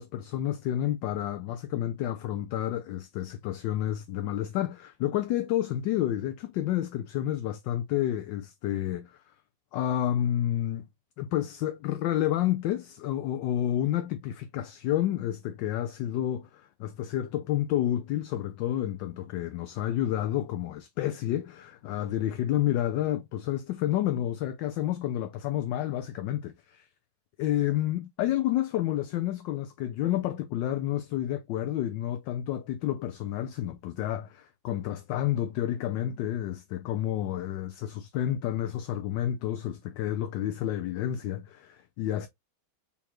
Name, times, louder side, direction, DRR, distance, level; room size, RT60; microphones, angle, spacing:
voice 1, 0.0-9.2 9.7-10.9 11.2-26.9 27.4-42.3, left 12 dB, 75° left, 1.2 m, -30 dB
4.2 x 3.6 x 2.9 m
omnidirectional pair, 2.2 m